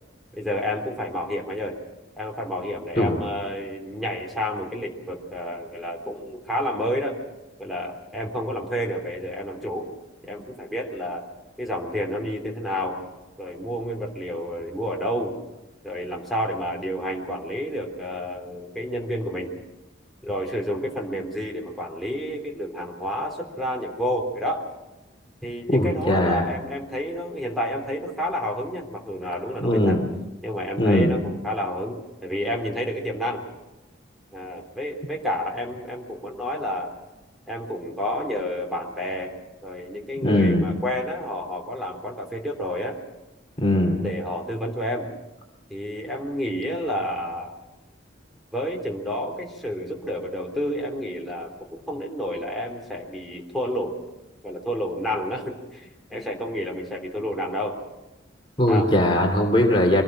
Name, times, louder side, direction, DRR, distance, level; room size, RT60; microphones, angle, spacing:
voice 1, 0.3-1.8 2.2-7.2 7.6-9.9 10.2-11.3 11.6-13.0 13.4-15.3 15.8-19.5 20.2-24.6 25.4-30.0 30.4-33.5 34.3-36.9 37.5-39.3 39.6-43.0 44.0-45.1 45.7-47.6 48.5-51.5 51.9-53.9 54.4-57.8 58.7-58.9, equal, ahead, -2 dB, 3.4 m, -30 dB
voice 2, 25.7-26.5 29.6-30.0 30.8-31.2 40.2-40.7 43.6-44.0 58.6-60.0, left 1 dB, 25° left, 1 dB, 2.6 m, -20 dB
24.5 x 19.0 x 6.3 m, 1.0 s
head